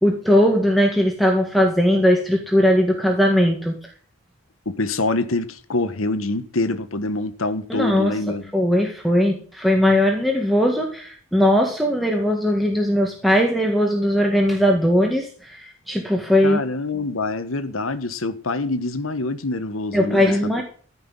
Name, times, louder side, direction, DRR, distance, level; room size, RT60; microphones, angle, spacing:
voice 1, 0.0-3.7 7.7-8.2 8.5-16.6 19.9-20.6, equal, ahead, 1.7 m, -19 dB
voice 2, 4.6-8.5 16.4-20.6, left 2 dB, 90° left, 1.4 m, -25 dB
14.5 x 6.0 x 7.3 m
head